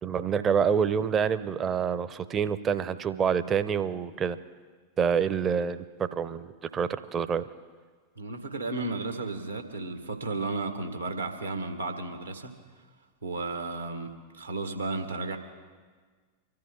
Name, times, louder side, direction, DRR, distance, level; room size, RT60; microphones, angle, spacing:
voice 1, 0.0-4.4 5.0-7.4, right 7 dB, 25° right, 14 dB, 0.7 m, -27 dB
voice 2, 8.2-12.5 13.2-15.4, right 3 dB, 80° right, 5 dB, 1.7 m, -33 dB
24.5 x 13.5 x 3.8 m, 1.5 s
figure-of-eight pair, 90°, 0 cm